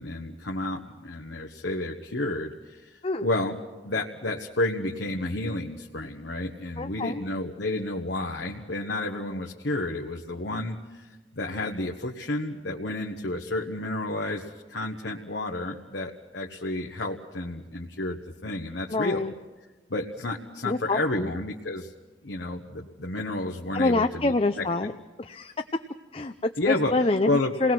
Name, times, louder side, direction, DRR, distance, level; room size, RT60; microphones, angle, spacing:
voice 1, 0.0-3.6 3.8-19.2 19.9-21.9 22.2-24.6 26.6-26.9 27.2-27.5, left 2 dB, 75° left, 1 dB, 1.4 m, -31 dB
voice 2, 6.8-7.2 18.9-19.3 20.6-21.3 23.7-24.9 25.2-25.5 26.1-27.3 27.6-27.7, left 2 dB, 30° left, 7 dB, 0.7 m, -26 dB
28.5 x 19.5 x 6.1 m, 1.2 s
head